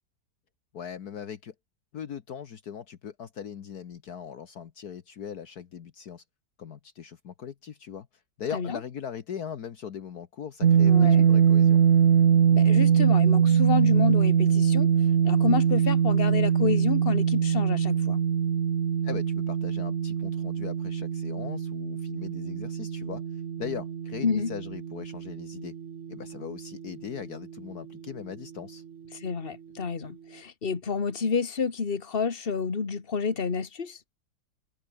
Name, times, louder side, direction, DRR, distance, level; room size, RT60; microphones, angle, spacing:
voice 1, 0.7-1.5 1.9-6.2 6.6-8.1 8.4-11.8 19.0-23.2 23.6-25.7 26.1-28.8, left 8 dB, 60° left, 1.7 m, -39 dB
sound 1, 10.6-26.6, right 8 dB, 50° right, 1.3 m, -23 dB
voice 2, 10.9-11.3 12.5-14.9 15.2-18.2 24.2-24.5 29.2-34.0, left 5 dB, 35° left, 1.9 m, -29 dB
omnidirectional pair, 1.9 m